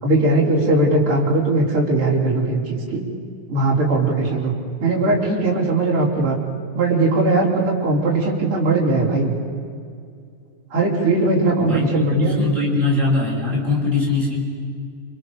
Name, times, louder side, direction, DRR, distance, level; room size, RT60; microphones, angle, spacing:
voice 1, 0.0-3.0 3.5-4.5 4.8-6.4 6.7-9.3 10.7-12.5, right 2 dB, 40° right, -3 dB, 5.0 m, -19 dB
voice 2, 11.6-14.4, left 3 dB, 20° right, -4 dB, 7.6 m, -21 dB
29.5 x 26.5 x 6.9 m, 2.3 s
omnidirectional pair, 3.9 m